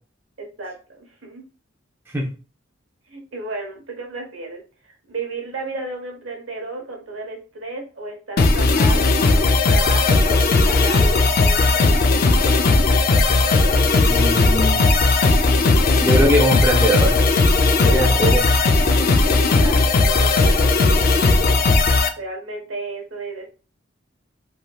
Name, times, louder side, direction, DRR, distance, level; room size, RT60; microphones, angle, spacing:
voice 1, 0.4-1.5 3.1-12.6 19.4-21.0 22.2-23.5, right 3 dB, 80° right, 1 dB, 1.0 m, -33 dB
sound 1, 8.4-22.1, left 3 dB, 50° left, 0.4 m, -16 dB
voice 2, 14.0-15.0 16.0-17.2 17.8-18.5, equal, 10° right, -3 dB, 0.5 m, -21 dB
3.3 x 2.7 x 2.3 m, 0.35 s
head